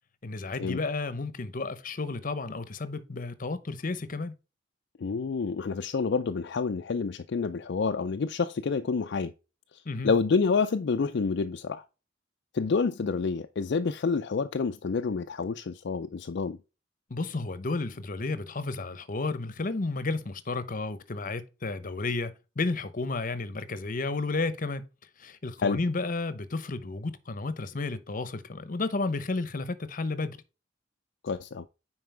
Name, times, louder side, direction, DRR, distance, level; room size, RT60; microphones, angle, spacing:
voice 1, 0.2-4.3 9.9-10.1 17.1-24.9 25.2-30.4, left 3 dB, 45° left, 0.8 m, -32 dB
voice 2, 5.0-9.3 10.0-11.8 12.5-16.6 25.6-25.8 31.2-31.6, left 4 dB, 65° left, 0.4 m, -28 dB
9.3 x 4.7 x 3.3 m
head